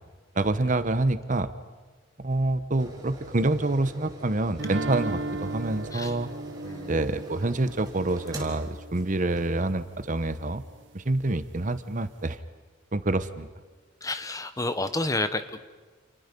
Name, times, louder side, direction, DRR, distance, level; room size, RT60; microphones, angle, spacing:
voice 1, 0.3-1.5 2.2-6.3 6.9-10.6 10.9-12.4 12.9-13.5, right 2 dB, 40° right, 12 dB, 1.0 m, -27 dB
sound 1, 2.8-9.8 10.3-10.4, equal, 20° right, 3.6 m, -43 dB
sound 2, 4.6-9.5, right 2 dB, 65° right, 0.9 m, -36 dB
voice 2, 14.0-15.6, left 2 dB, 15° left, 10 dB, 1.1 m, -30 dB
29.5 x 29.0 x 5.4 m, 1.4 s
head